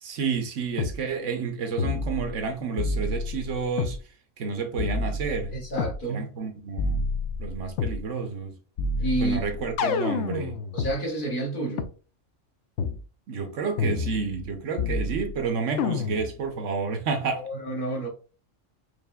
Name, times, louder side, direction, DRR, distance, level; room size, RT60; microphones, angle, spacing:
voice 1, 0.0-4.0 4.4-5.5 6.1-7.0 7.4-8.5 9.2-10.6 13.3-17.5, right 5 dB, 70° right, 1.1 m, -30 dB
sound 1, 0.8-1.0 1.8-2.4 2.8-4.0 4.8-6.0 6.8-8.0 8.8-10.9 11.8-11.9 12.8-13.0 13.8-14.5 14.8-15.4 15.8-16.4, left 4 dB, 70° left, 0.8 m, -29 dB
voice 2, 5.5-6.3 9.0-9.4 10.7-11.9 17.4-18.1, right 2 dB, 45° left, 1.1 m, -29 dB
4.9 x 2.9 x 2.3 m
omnidirectional pair, 1.3 m